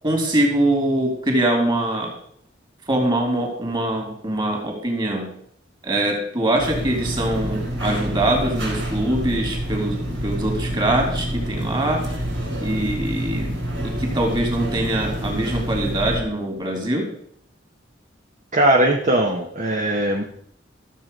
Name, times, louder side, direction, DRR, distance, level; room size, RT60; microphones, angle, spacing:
voice 1, 0.0-2.1 2.9-5.3 5.8-12.0 12.6-13.5 13.8-17.1, right 1 dB, 25° right, 1 dB, 3.1 m, -23 dB
sound 1, 6.6-16.2, equal, 85° right, 4.0 m, -27 dB
voice 2, 18.5-20.2, right 1 dB, 45° right, 1 dB, 1.1 m, -19 dB
13.5 x 7.6 x 5.3 m, 0.67 s
head